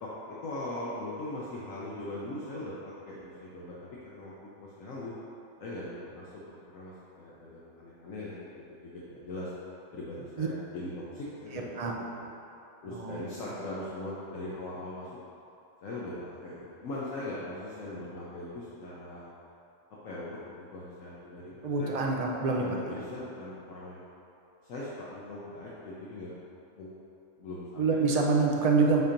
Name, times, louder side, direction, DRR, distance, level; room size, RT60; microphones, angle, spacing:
voice 1, 0.0-5.1 5.6-9.5 9.9-11.7 12.1-12.3 12.8-15.1 15.8-19.3 20.0-22.0 22.4-24.0 24.7-26.4 26.8-26.9 27.4-28.0, left 1 dB, 80° left, -8 dB, 1.3 m, -40 dB
voice 2, 21.6-22.6 27.8-29.0, right 4 dB, 40° right, 0 dB, 0.5 m, -26 dB
7.8 x 2.9 x 5.1 m, 2.8 s
omnidirectional pair, 1.4 m